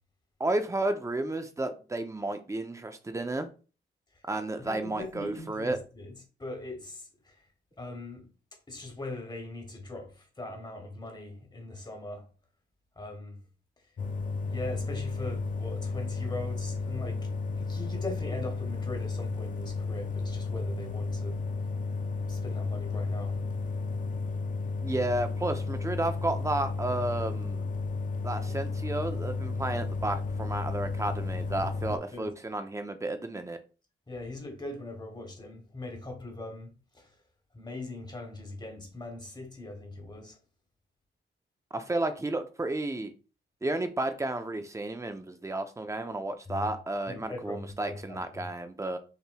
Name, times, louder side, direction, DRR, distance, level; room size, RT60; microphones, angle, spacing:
voice 1, 0.4-3.5 4.3-5.8 24.8-27.7 28.2-33.6 41.7-43.1 43.6-49.0, right 2 dB, 15° right, 0.5 m, -32 dB
voice 2, 4.6-7.4 7.8-8.3 8.7-12.2 13.0-13.4 14.4-17.3 17.6-21.4 22.3-23.4 31.9-32.3 34.1-37.1 37.5-40.4 46.5-46.7 47.1-48.5, left 2 dB, 20° left, 1.2 m, -40 dB
sound 1, 14.0-32.0, left 4 dB, 40° left, 0.5 m, -33 dB
5.6 x 3.1 x 2.3 m
wide cardioid pair, 115°, 20 cm